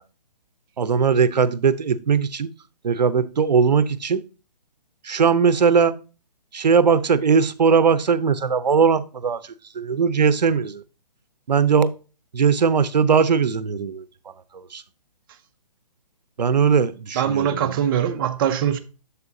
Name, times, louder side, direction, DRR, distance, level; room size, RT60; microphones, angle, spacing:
voice 1, 0.8-2.5 2.8-4.2 5.1-5.9 6.5-9.4 9.8-10.8 11.5-11.9 12.3-14.0 14.7-14.8 16.4-17.7, right 6 dB, 90° right, 0.6 m, -19 dB
voice 2, 17.1-18.8, right 9 dB, 30° right, 0.6 m, -22 dB
7.0 x 6.8 x 2.6 m
hypercardioid pair, 145°, 21 cm